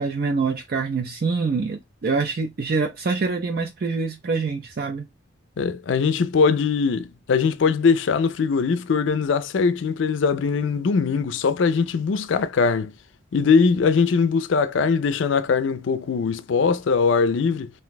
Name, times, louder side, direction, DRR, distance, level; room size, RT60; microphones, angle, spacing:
voice 1, 0.0-5.1, right 4 dB, 50° right, 0.4 m, -25 dB
voice 2, 5.6-12.9 13.3-17.7, left 5 dB, 70° left, 0.4 m, -21 dB
2.6 x 2.2 x 3.9 m
head